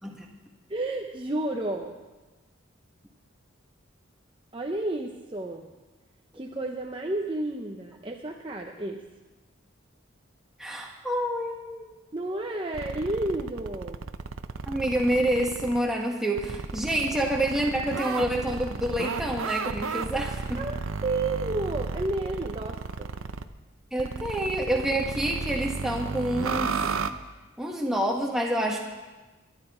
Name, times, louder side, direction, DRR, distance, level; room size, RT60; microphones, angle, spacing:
voice 1, 0.7-2.0 4.5-5.7 6.3-9.0 12.1-14.0 20.6-23.1, right 2 dB, 25° right, 1 dB, 0.8 m, -31 dB
voice 2, 10.6-11.9 14.7-20.6 23.9-26.9 27.6-28.8, right 1 dB, ahead, -1 dB, 1.7 m, -28 dB
sound 1, 12.7-15.8 16.4-23.5 24.0-27.1, right 4 dB, 90° right, 0.7 m, -33 dB
21.5 x 11.0 x 4.4 m, 1.2 s
head